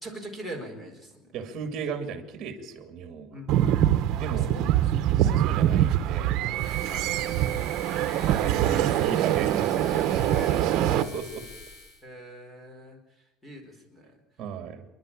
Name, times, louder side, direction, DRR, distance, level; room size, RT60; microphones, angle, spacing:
voice 1, 0.0-1.3 3.3-3.9 4.5-4.8 6.9-7.1 8.6-10.9 12.0-13.0 13.4-14.1, right 1 dB, 10° left, 6 dB, 4.3 m, -41 dB
voice 2, 1.3-3.4 4.2-4.6 4.9-6.9 7.4-7.7 8.2-10.0 10.6-11.5 14.4-14.8, right 6 dB, 40° right, 7 dB, 2.6 m, -36 dB
sound 1, 3.5-11.0, right 12 dB, 55° right, 1.2 m, -24 dB
sound 2, 6.5-12.0, left 3 dB, 65° left, 5.1 m, -45 dB
28.0 x 11.0 x 8.7 m, 0.95 s
cardioid pair, 165°, 0 cm